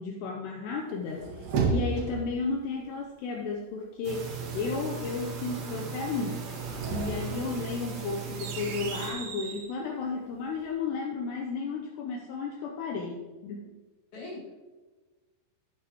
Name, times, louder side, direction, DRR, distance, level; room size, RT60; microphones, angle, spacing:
voice 1, 0.0-6.5 6.9-13.7, left 4 dB, 85° left, 1 dB, 2.5 m, -33 dB
sound 1, 0.9-2.4 6.5-9.7, right 4 dB, 65° right, 2.9 m, -33 dB
sound 2, 4.0-9.1, right 6 dB, 85° right, 1.5 m, -38 dB
voice 2, 14.1-14.6, left 2 dB, 55° left, -4 dB, 3.6 m, -40 dB
12.5 x 9.2 x 3.0 m, 1.3 s
omnidirectional pair, 5.8 m